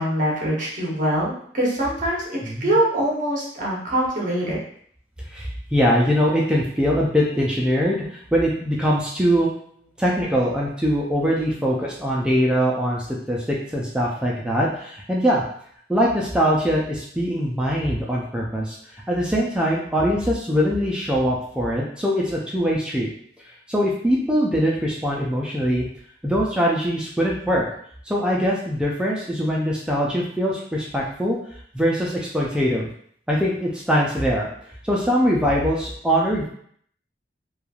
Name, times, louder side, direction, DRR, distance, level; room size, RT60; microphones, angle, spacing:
voice 1, 0.0-4.6, right 1 dB, 45° right, -4 dB, 0.8 m, -23 dB
voice 2, 2.4-2.7 5.3-9.5 10.0-15.4 15.9-18.8 19.1-23.1 23.7-25.9 26.2-27.7 28.1-31.4 31.7-32.9 33.3-34.5 34.8-36.5, equal, 5° right, -4 dB, 0.3 m, -22 dB
3.0 x 2.3 x 2.3 m, 0.62 s
head